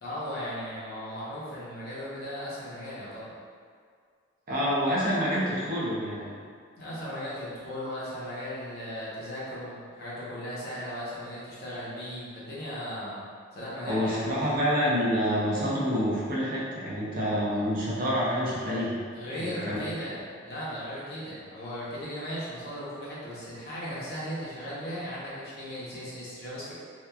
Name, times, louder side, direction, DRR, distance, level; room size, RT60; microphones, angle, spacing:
voice 1, 0.0-3.3 6.8-13.2 13.5-14.5 19.1-26.7, equal, 45° left, -9 dB, 0.7 m, -37 dB
voice 2, 4.5-6.4 13.9-19.0 19.4-19.8, equal, 40° right, -7 dB, 0.5 m, -27 dB
2.8 x 2.2 x 2.2 m, 2.1 s
head